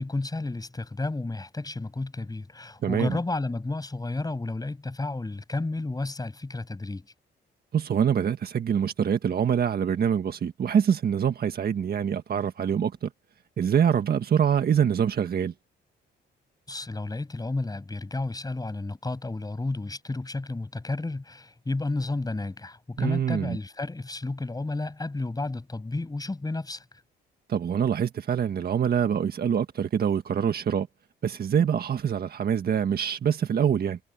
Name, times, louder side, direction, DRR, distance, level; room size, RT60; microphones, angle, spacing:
voice 1, 0.0-7.1 16.7-26.8, left 2 dB, 20° left, 7.1 m, -32 dB
voice 2, 2.8-3.2 7.7-13.1 13.6-15.5 23.0-23.6 27.5-30.9 31.2-34.0, right 8 dB, 55° right, 1.6 m, -25 dB
cardioid pair, 75°, 19 cm